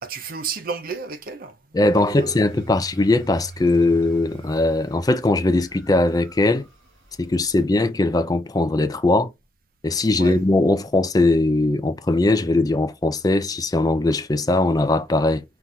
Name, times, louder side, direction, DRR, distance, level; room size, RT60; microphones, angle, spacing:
voice 1, 0.0-1.6 1.9-2.4 10.2-10.4, right 5 dB, 45° right, 0.6 m, -32 dB
voice 2, 1.7-6.7 7.2-9.3 9.8-15.4, left 2 dB, 20° left, 0.4 m, -20 dB
sound 1, 1.9-7.6, right 3 dB, 90° right, 2.9 m, -43 dB
5.7 x 2.4 x 3.9 m
head